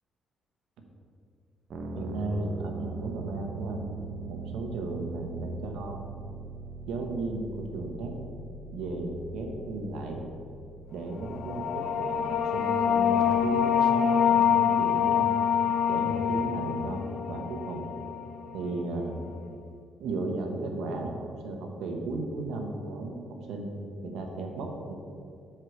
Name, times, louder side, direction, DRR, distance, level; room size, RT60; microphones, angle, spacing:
sound 1, 1.7-13.3, right 3 dB, 60° right, 1.1 m, -42 dB
voice 1, 1.9-3.9 4.3-6.0 6.9-8.1 8.7-10.2 10.9-15.3 15.9-17.8 18.5-19.1 20.0-23.2 23.5-23.7 24.0-24.9, right 2 dB, 85° right, 3 dB, 1.2 m, -35 dB
sound 2, 11.3-18.6, left 8 dB, 65° left, 0.7 m, -25 dB
7.6 x 4.8 x 6.2 m, 2.5 s
cardioid pair, 90°, 0 cm